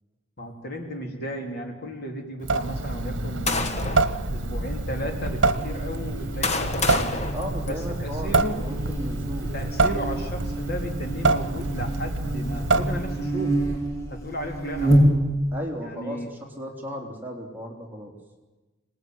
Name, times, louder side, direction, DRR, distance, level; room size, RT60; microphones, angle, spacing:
voice 1, 0.4-3.8 4.3-7.1 7.7-8.6 9.5-13.6 14.1-15.0 15.8-16.4, equal, 50° left, 2 dB, 3.8 m, -34 dB
Water tap faucet / Sink (filling or washing) / Drip, 2.4-13.3, right 3 dB, 65° right, 1.2 m, -27 dB
sound 1, 3.0-4.1 4.9-5.0 5.9-8.2, left 3 dB, 35° left, 1.6 m, -30 dB
Buzz, 4.2-15.6, right 1 dB, 15° left, 4.6 m, -28 dB
voice 2, 7.3-9.5 15.5-18.1, equal, 10° right, -1 dB, 3.4 m, -35 dB
25.5 x 19.0 x 9.5 m, 1.2 s
head